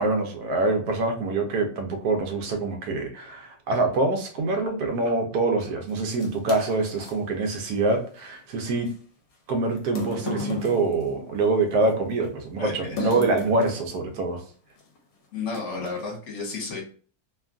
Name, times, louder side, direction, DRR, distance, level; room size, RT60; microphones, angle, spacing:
voice 1, 0.0-8.9 9.5-14.4, right 3 dB, 75° right, 4 dB, 1.2 m, -25 dB
sound 1, 5.9-7.2 8.9-9.0 9.8-11.9 13.0-13.9 14.8-15.0 15.5-16.0, left 4 dB, 70° left, 1.1 m, -34 dB
voice 2, 12.6-13.2 15.3-16.8, left 4 dB, 50° left, -1 dB, 1.3 m, -32 dB
3.0 x 2.4 x 2.4 m, 0.42 s
omnidirectional pair, 1.7 m